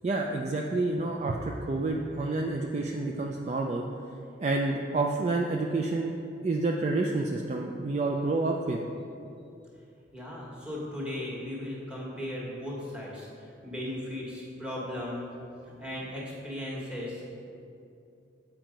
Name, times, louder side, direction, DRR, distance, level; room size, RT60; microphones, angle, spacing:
voice 1, 0.0-3.8 4.4-6.1 6.4-8.8, right 2 dB, 35° right, 1 dB, 0.3 m, -29 dB
voice 2, 10.1-15.3 15.6-17.3, left 1 dB, 5° right, -5 dB, 1.3 m, -37 dB
7.5 x 4.5 x 5.1 m, 2.6 s
head